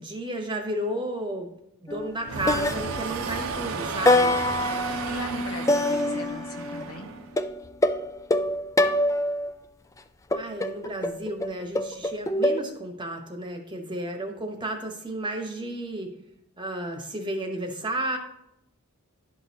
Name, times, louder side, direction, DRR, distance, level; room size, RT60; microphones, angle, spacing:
voice 1, 0.0-1.5 1.8-4.4 5.0-5.1 10.3-16.1 16.6-18.2, right 1 dB, 20° right, 3 dB, 1.0 m, -32 dB
sound 1, 1.9-2.2 2.5-3.5 4.1-6.9 7.4-9.5 10.3-12.6, left 1 dB, 15° left, 0.3 m, -25 dB
sound 2, 2.2-7.4, right 4 dB, 70° right, 0.7 m, -33 dB
voice 2, 5.0-7.1, left 1 dB, 80° left, 6 dB, 1.1 m, -39 dB
11.0 x 6.2 x 2.8 m, 0.78 s
head